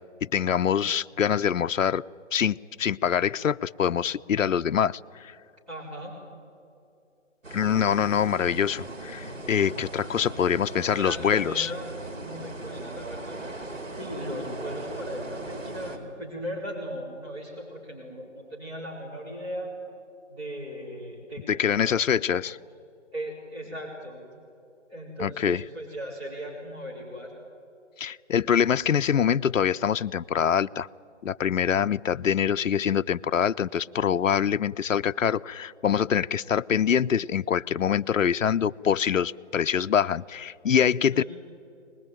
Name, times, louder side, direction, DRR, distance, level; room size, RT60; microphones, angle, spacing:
voice 1, 0.3-2.0 2.3-5.4 7.5-11.7 21.5-22.6 25.2-25.6 28.0-30.9 31.2-41.2, left 8 dB, 85° left, 12 dB, 0.6 m, -24 dB
voice 2, 5.7-6.2 10.9-11.9 12.1-13.7 14.0-19.7 20.3-22.0 22.3-22.4 23.1-24.2 24.9-27.3 41.1-41.2, equal, 20° right, -6 dB, 4.5 m, -37 dB
sound 1, 7.4-16.0, right 2 dB, 75° right, 4.4 m, -39 dB
23.5 x 20.5 x 9.0 m, 2.5 s
figure-of-eight pair, 160°, 38 cm